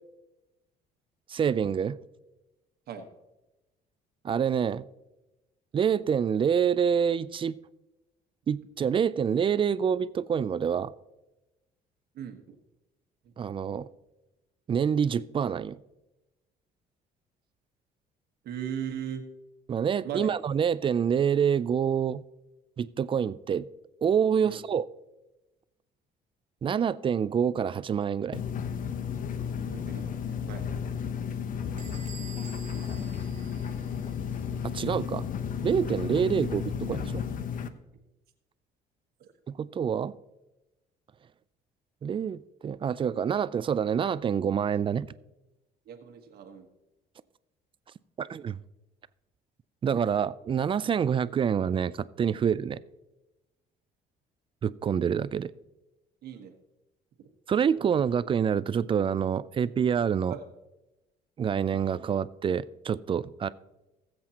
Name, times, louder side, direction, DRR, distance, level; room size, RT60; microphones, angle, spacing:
voice 1, 1.3-2.0 4.2-4.8 5.7-7.6 8.5-10.9 13.4-13.9 14.7-15.8 19.7-22.2 22.8-23.7 24.0-24.8 26.6-28.4 34.7-35.2 35.6-37.2 39.5-40.1 42.0-45.1 48.2-48.6 49.8-52.8 54.6-55.5 57.5-60.3 61.4-63.5, right 7 dB, 30° right, 17 dB, 0.4 m, -27 dB
voice 2, 12.1-12.6 13.2-13.9 18.4-19.2 20.0-20.3 24.4-24.6 29.7-30.9 31.3-31.4 32.9-33.1 34.7-34.8 39.2-39.3 45.8-46.7 56.2-56.5 60.3-60.5, right 8 dB, 70° right, 5 dB, 1.3 m, -39 dB
sound 1, 28.3-37.7, left 7 dB, 55° left, 0.8 m, -33 dB
Bell / Squeak, 31.8-34.3, right 6 dB, 45° right, 1.8 m, -49 dB
19.0 x 7.7 x 2.9 m, 0.98 s
cardioid pair, 110°, 17 cm